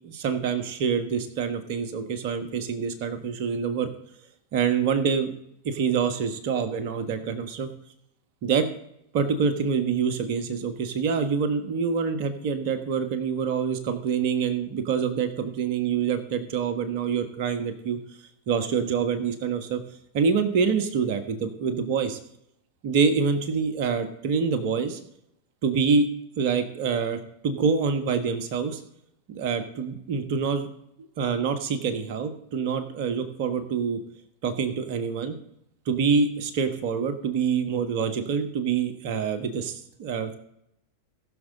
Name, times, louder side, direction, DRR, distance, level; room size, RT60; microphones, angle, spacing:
voice 1, 0.0-3.9 4.5-5.4 5.6-7.7 8.4-8.7 9.1-18.0 18.5-19.8 20.1-22.2 22.8-25.0 25.6-26.1 26.4-28.8 29.3-30.7 31.0-34.0 34.4-35.4 35.8-40.4, right 6 dB, 45° right, 8 dB, 1.5 m, -26 dB
19.5 x 6.5 x 3.8 m, 0.75 s
figure-of-eight pair, 90°, 0 cm